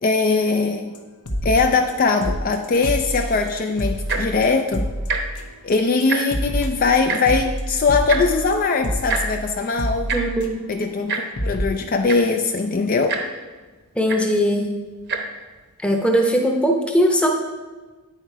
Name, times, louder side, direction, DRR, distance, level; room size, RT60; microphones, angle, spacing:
voice 1, 0.0-0.9 1.4-4.9 5.6-10.1 10.7-13.2, left 4 dB, 40° left, 5 dB, 0.4 m, -21 dB
sound 1, 0.9-1.0 1.3-1.9 2.2-5.7 6.0-10.8 11.1-11.2 11.4-11.7, equal, 80° left, 1.0 m, -27 dB
Tick-tock, 4.0-4.4 5.0-5.2 5.5-5.6 5.9-6.5 7.1-7.2 8.1-8.2 9.1-9.2 10.1-10.2 11.1-11.2 11.8-11.9 12.1-12.4 13.1-13.2 14.1-14.2 15.0-15.2 15.9-16.0, right 5 dB, 50° right, 0.9 m, -25 dB
voice 2, 10.1-10.7 14.0-14.7 15.8-17.3, equal, 5° left, 2 dB, 0.7 m, -19 dB
9.2 x 5.7 x 4.5 m, 1.3 s
head